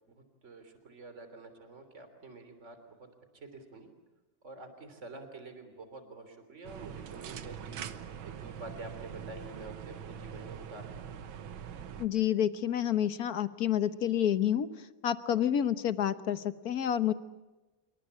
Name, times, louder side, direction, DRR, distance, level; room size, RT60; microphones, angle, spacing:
voice 1, 0.4-2.9 3.5-3.9 4.4-7.8 8.2-11.2, right 2 dB, 35° right, 8 dB, 3.6 m, -48 dB
sound 1, 6.6-12.1, right 8 dB, 85° right, 2.0 m, -43 dB
voice 2, 12.0-14.7 15.0-17.1, left 10 dB, 55° left, 13 dB, 1.4 m, -29 dB
27.0 x 24.0 x 8.5 m, 1.1 s
omnidirectional pair, 2.1 m